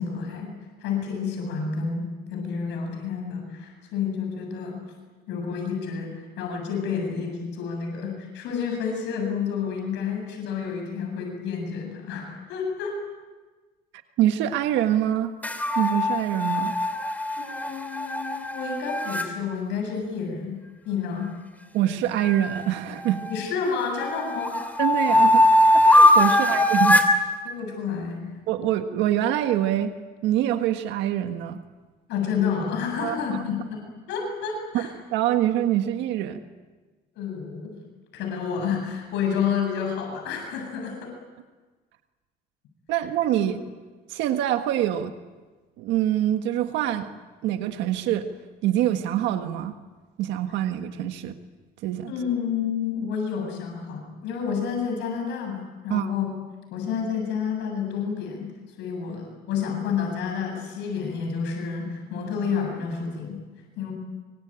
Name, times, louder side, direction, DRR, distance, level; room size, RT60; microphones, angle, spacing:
voice 1, 0.0-4.8 5.3-13.0 17.4-20.6 20.8-21.3 23.3-24.6 26.3-26.5 27.4-28.3 32.1-34.9 37.2-37.8 38.1-41.1 43.3-43.6 52.1-56.3 56.7-63.4 63.8-63.9, left 6 dB, 85° left, 2 dB, 7.8 m, -30 dB
voice 2, 14.2-15.3 15.8-16.8 21.7-23.2 24.8-27.0 28.5-29.9 30.2-31.6 33.0-33.2 34.7-36.4 42.9-43.6 44.1-45.1 45.8-47.1 47.4-48.3 48.6-49.7 50.2-51.4 51.8-52.1 55.9-56.1, right 12 dB, 90° right, 7 dB, 1.6 m, -25 dB
sound 1, 15.4-19.3 22.2-23.5 24.0-27.2, left 1 dB, 10° left, 3.2 m, -20 dB
26.5 x 24.0 x 9.0 m, 1.3 s
cardioid pair, 110°, 18 cm